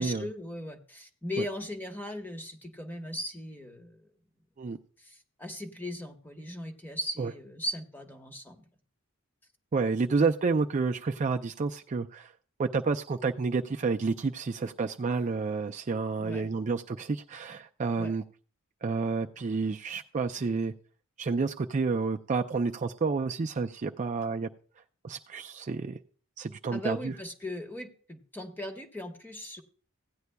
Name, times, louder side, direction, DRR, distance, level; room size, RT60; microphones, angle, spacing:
voice 1, 0.0-4.1 5.0-8.7 16.2-16.5 18.0-18.1 26.7-29.6, left 1 dB, 10° left, 5 dB, 1.1 m, -38 dB
voice 2, 9.7-12.3 12.6-18.2 18.8-20.7 21.2-24.5 25.0-26.0 26.4-27.1, right 4 dB, 35° right, 5 dB, 0.4 m, -30 dB
16.0 x 9.4 x 2.2 m, 0.41 s
head